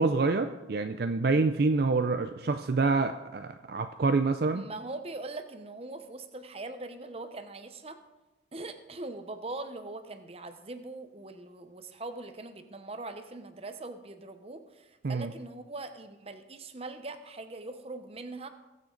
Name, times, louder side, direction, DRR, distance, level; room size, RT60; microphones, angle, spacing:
voice 1, 0.0-4.6 15.0-15.3, right 3 dB, 55° right, 8 dB, 0.5 m, -27 dB
voice 2, 4.5-8.0 8.5-18.5, right 2 dB, 30° right, 8 dB, 0.9 m, -41 dB
20.5 x 7.5 x 3.9 m, 1.1 s
head